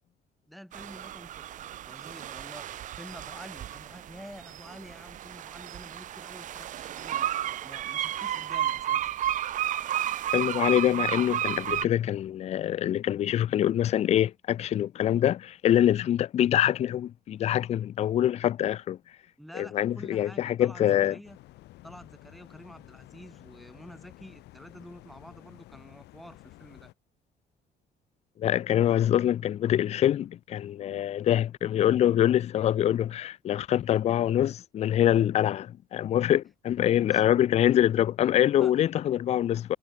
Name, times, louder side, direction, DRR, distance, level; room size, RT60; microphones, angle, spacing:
voice 1, 0.5-7.3 7.6-9.0 19.4-21.4 21.8-26.9 37.1-37.2 38.6-38.7, equal, ahead, 6.1 m, -48 dB
sound 1, 0.7-11.8, right 11 dB, 50° right, 0.6 m, -32 dB
voice 2, 10.3-19.0 19.5-21.2 28.4-39.8, left 11 dB, 40° left, 0.4 m, -25 dB
sound 2, 21.2-26.9, left 18 dB, 85° left, 2.4 m, -52 dB
cardioid pair, 110°, 17 cm